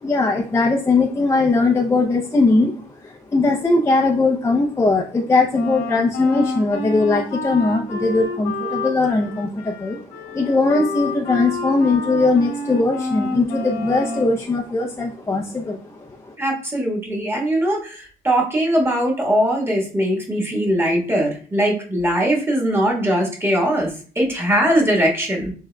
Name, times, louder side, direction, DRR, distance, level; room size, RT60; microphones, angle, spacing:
voice 1, 0.0-16.3, left 3 dB, 15° left, 0 dB, 0.5 m, -20 dB
Wind instrument woodwind instrument, 5.5-14.4, left 1 dB, 80° left, 1.4 m, -29 dB
voice 2, 16.4-25.5, right 1 dB, 15° right, 0 dB, 1.4 m, -20 dB
6.5 x 3.6 x 2.2 m, 0.43 s
cardioid pair, 110°, 17 cm